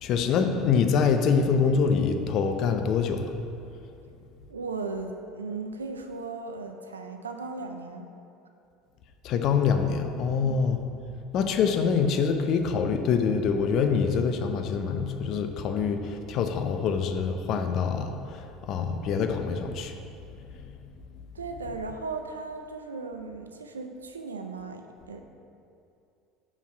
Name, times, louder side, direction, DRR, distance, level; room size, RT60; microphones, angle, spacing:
voice 1, 0.0-3.3 9.2-10.8 11.3-18.1 18.7-19.9, left 6 dB, 50° left, 6 dB, 0.5 m, -25 dB
voice 2, 4.5-8.1 10.4-10.7 21.3-25.2, right 3 dB, 85° right, 5 dB, 0.5 m, -37 dB
5.3 x 4.8 x 5.7 m, 2.6 s
hypercardioid pair, 70°, 0 cm